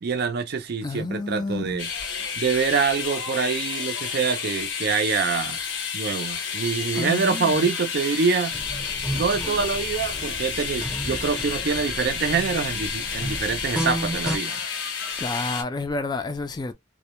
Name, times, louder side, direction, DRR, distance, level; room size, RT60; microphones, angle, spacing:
voice 1, 0.0-1.9 2.4-5.6 5.9-8.6 9.1-14.6, right 5 dB, 60° right, 0.4 m, -25 dB
voice 2, 0.8-1.8 6.9-7.7 15.2-16.7, left 3 dB, 25° left, 0.3 m, -29 dB
sound 1, 1.8-15.6, left 6 dB, 85° left, 0.6 m, -30 dB
sound 2, 8.5-14.4, equal, 5° right, 0.7 m, -33 dB
2.1 x 2.1 x 2.9 m
head